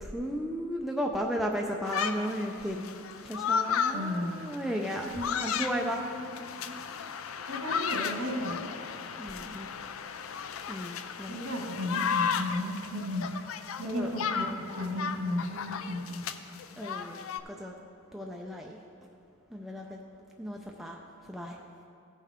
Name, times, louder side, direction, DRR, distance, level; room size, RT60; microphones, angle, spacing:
voice 1, 0.0-3.0 3.2-5.1 5.4-6.0 9.2-9.7 10.7-11.5 13.8-14.1 16.8-17.7 18.1-18.8 19.5-20.0 20.4-21.0 21.3-21.6, equal, ahead, -1 dB, 0.4 m, -34 dB
sound 1, 1.8-17.4, left 6 dB, 65° left, 0.4 m, -34 dB
voice 2, 3.9-4.5 5.1-6.8 7.5-8.6 11.3-13.3 13.8-16.2, left 1 dB, 80° right, -2 dB, 1.8 m, -35 dB
15.5 x 5.6 x 3.6 m, 2.6 s
head